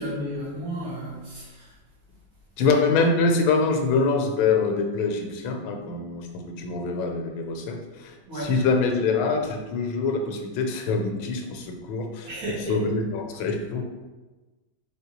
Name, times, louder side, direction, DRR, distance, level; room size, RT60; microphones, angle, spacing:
voice 1, 0.0-1.7 8.3-8.5 12.3-12.8, right 1 dB, 50° right, -8 dB, 1.7 m, -33 dB
voice 2, 2.6-12.3 12.7-13.8, left 4 dB, 90° left, 3 dB, 1.4 m, -25 dB
4.1 x 3.3 x 2.9 m, 1.2 s
omnidirectional pair, 2.1 m